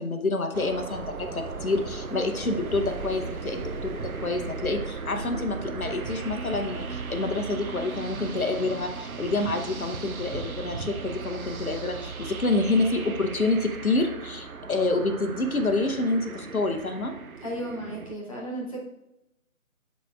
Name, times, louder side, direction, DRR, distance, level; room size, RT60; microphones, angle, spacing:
voice 1, 0.0-17.2, left 2 dB, 80° left, 6 dB, 0.9 m, -28 dB
sound 1, 0.5-18.2, right 4 dB, 85° right, 0.6 m, -36 dB
voice 2, 17.4-18.8, right 1 dB, 25° left, -4 dB, 0.9 m, -34 dB
11.5 x 4.1 x 2.3 m, 0.88 s
figure-of-eight pair, 155°, 42 cm